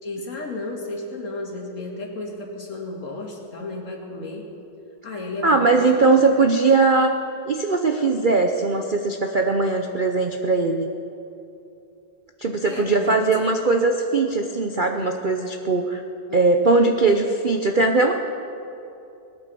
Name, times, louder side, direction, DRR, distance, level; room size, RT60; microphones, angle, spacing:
voice 1, 0.0-4.5 5.0-5.7 5.9-6.1 6.3-6.4 12.7-13.6 16.3-16.4, left 2 dB, 45° left, 0 dB, 2.3 m, -33 dB
voice 2, 5.4-7.2 7.5-10.9 12.4-16.0 16.3-18.1, right 3 dB, 60° right, 4 dB, 0.5 m, -20 dB
19.5 x 9.2 x 6.9 m, 2.8 s
omnidirectional pair, 1.9 m